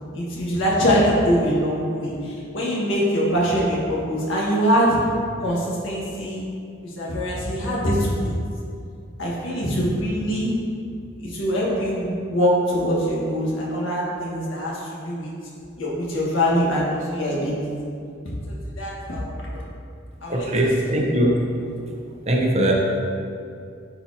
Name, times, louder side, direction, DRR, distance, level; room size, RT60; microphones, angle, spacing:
voice 1, 0.1-5.0 5.4-6.4 6.8-8.4 9.2-10.5 11.2-15.3 15.8-17.6 18.8-19.5 20.2-20.5, equal, 70° left, -5 dB, 1.6 m, -23 dB
voice 2, 20.3-21.4 22.2-22.7, right 1 dB, 30° right, -1 dB, 0.7 m, -20 dB
10.5 x 4.3 x 2.8 m, 2.4 s
head